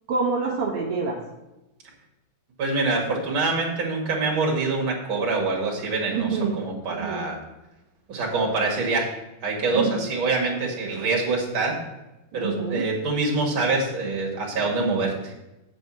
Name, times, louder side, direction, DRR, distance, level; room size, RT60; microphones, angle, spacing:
voice 1, 0.1-1.2 6.1-6.5 7.0-7.2 9.7-10.0 12.3-12.8, right 5 dB, 80° right, -3 dB, 1.2 m, -26 dB
voice 2, 2.6-7.4 8.1-9.1 9.4-11.8 12.3-15.3, right 3 dB, 40° right, -2 dB, 1.9 m, -25 dB
8.4 x 5.2 x 7.7 m, 0.99 s
omnidirectional pair, 4.8 m